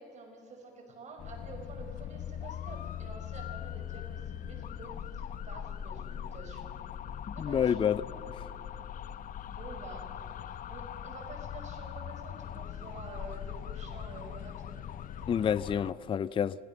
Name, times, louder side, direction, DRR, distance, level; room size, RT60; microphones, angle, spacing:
voice 1, 0.0-6.9 7.3-7.8 9.5-10.1 10.5-14.8 15.2-15.5, right 3 dB, 45° right, 2 dB, 5.5 m, -48 dB
sound 1, 1.2-15.9, left 9 dB, 55° left, 0.8 m, -41 dB
voice 2, 7.3-8.0 15.3-16.6, left 8 dB, 30° left, 18 dB, 0.4 m, -28 dB
25.5 x 18.0 x 6.8 m, 2.6 s
cardioid pair, 110°, 17 cm